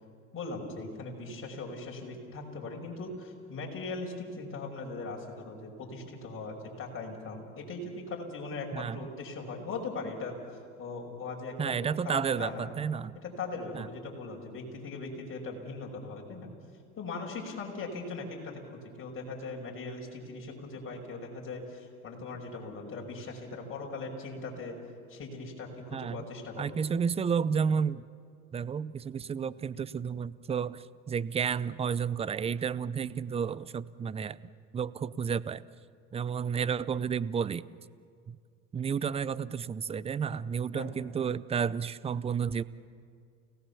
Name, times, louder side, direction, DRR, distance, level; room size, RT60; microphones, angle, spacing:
voice 1, 0.3-10.4 10.8-11.8 12.0-12.7 13.2-16.5 17.0-24.8 25.1-26.7 40.7-41.0, left 3 dB, 30° left, 0 dB, 5.8 m, -39 dB
voice 2, 8.7-9.1 11.6-13.2 13.7-13.9 25.9-26.3 26.6-28.1 28.5-34.4 34.7-35.6 36.1-37.7 38.3-38.4 38.7-42.6, right 6 dB, 15° right, 19 dB, 0.5 m, -31 dB
29.5 x 18.0 x 7.1 m, 2.2 s
hypercardioid pair, 100°, 41 cm